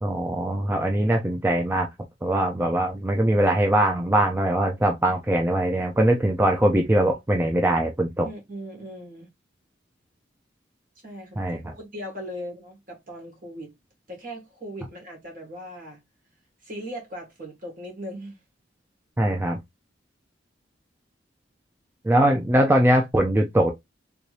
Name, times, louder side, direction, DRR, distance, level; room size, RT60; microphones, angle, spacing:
voice 1, 0.0-1.9 2.2-8.3 11.4-11.7 19.2-19.6 22.0-23.7, right 1 dB, 10° right, 0.4 m, -21 dB
voice 2, 8.2-9.3 11.0-13.7 14.1-16.0 16.6-18.4, equal, 50° right, 1.8 m, -38 dB
3.4 x 2.7 x 3.2 m
head